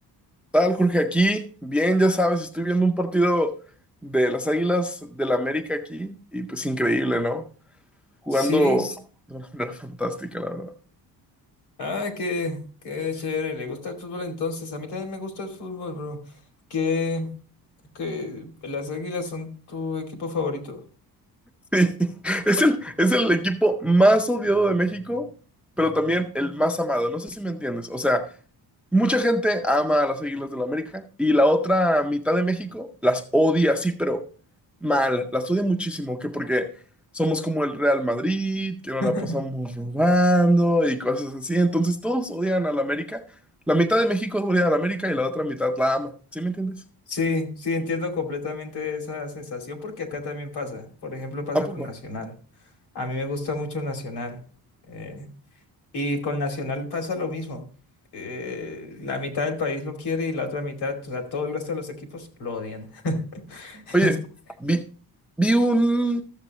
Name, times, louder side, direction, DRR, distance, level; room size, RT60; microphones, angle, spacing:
voice 1, 0.5-3.5 4.0-7.4 8.2-8.9 9.3-10.7 21.7-25.3 25.8-28.2 28.9-34.2 34.8-36.7 37.1-43.2 43.7-46.7 51.5-51.9 63.9-64.2 64.6-64.8 65.4-66.2, equal, 5° right, 7 dB, 0.4 m, -23 dB
voice 2, 8.3-8.8 11.8-12.6 12.8-16.2 16.7-17.3 17.9-20.8 39.0-39.4 47.1-52.3 52.9-54.4 54.9-55.3 55.9-57.6 58.1-64.2, left 3 dB, 80° left, 4 dB, 2.6 m, -30 dB
13.0 x 7.4 x 3.0 m, 0.39 s
cardioid pair, 175°, 38 cm